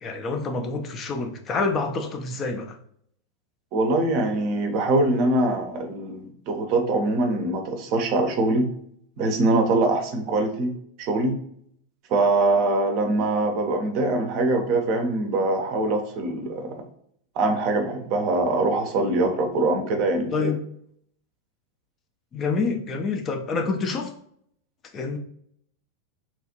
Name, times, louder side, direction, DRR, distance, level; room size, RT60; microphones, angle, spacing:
voice 1, 0.0-2.8 20.3-20.6 22.3-24.1 24.9-25.2, left 4 dB, 25° left, 5 dB, 0.4 m, -27 dB
voice 2, 3.7-8.7 9.2-10.7 11.0-11.3 12.1-16.8 17.4-20.5, right 2 dB, 45° right, 4 dB, 0.6 m, -23 dB
2.9 x 2.4 x 2.7 m, 0.68 s
figure-of-eight pair, 90°, 0 cm